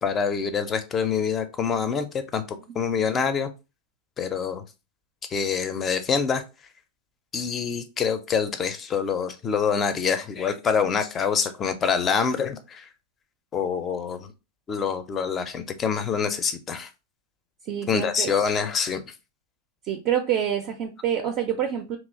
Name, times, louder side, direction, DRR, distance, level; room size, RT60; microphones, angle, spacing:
voice 1, 0.0-3.5 4.2-4.6 5.3-6.4 7.3-12.9 13.5-14.3 14.7-16.9 17.9-19.0, left 6 dB, 25° left, 10 dB, 0.4 m, -26 dB
voice 2, 17.7-18.3 19.8-22.0, right 9 dB, 40° right, 5 dB, 0.4 m, -27 dB
2.9 x 2.3 x 2.6 m, 0.28 s
figure-of-eight pair, 90°, 0 cm